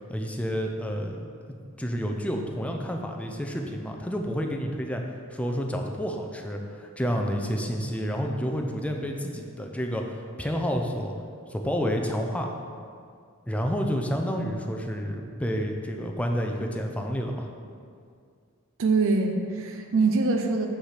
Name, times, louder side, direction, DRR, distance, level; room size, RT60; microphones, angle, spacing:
voice 1, 0.1-1.2 1.8-5.0 5.3-11.1 11.5-12.5 13.5-17.5, equal, 5° left, 2 dB, 0.5 m, -29 dB
voice 2, 18.8-20.7, right 3 dB, 65° right, 4 dB, 0.7 m, -23 dB
5.6 x 5.0 x 5.9 m, 2.2 s
head